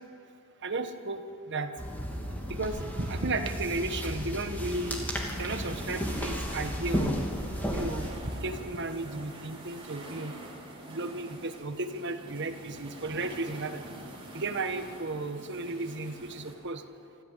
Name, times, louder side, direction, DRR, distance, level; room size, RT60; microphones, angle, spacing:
voice 1, 0.6-1.7 2.5-5.0 5.4-7.2 7.7-8.1 8.4-10.3 10.8-13.8 14.3-16.8, right 2 dB, 55° right, 7 dB, 1.4 m, -34 dB
sound 1, 1.8-8.1, equal, 10° left, 2.9 m, -33 dB
sound 2, 4.6-16.5, right 1 dB, 25° right, 4.1 m, -46 dB
27.5 x 13.5 x 8.4 m, 2.6 s
head